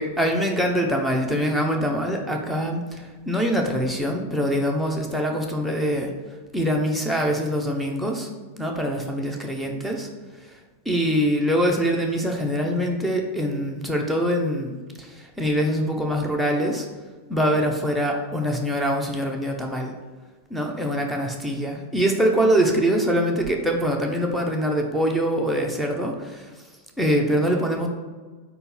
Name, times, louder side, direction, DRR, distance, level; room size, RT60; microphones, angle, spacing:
voice 1, 0.0-2.8 3.3-6.1 6.5-8.3 8.6-10.1 10.9-14.8 15.4-16.8 17.3-19.9 20.5-26.1 27.0-27.9, equal, ahead, 1 dB, 0.9 m, -23 dB
4.5 x 4.2 x 5.6 m, 1.4 s
figure-of-eight pair, 90°, 0 cm